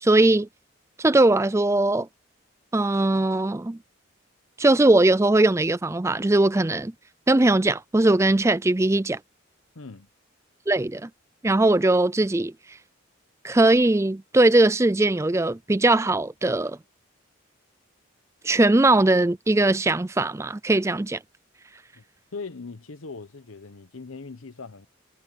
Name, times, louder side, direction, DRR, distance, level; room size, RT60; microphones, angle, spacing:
voice 1, 0.0-0.5 1.0-2.1 2.7-3.8 4.6-6.9 7.3-9.2 10.7-11.1 11.4-12.5 13.4-16.8 18.4-21.2, right 2 dB, 15° right, 0.4 m, -20 dB
voice 2, 9.7-10.1 22.0-22.1 22.3-24.9, left 4 dB, 80° left, 1.0 m, -40 dB
head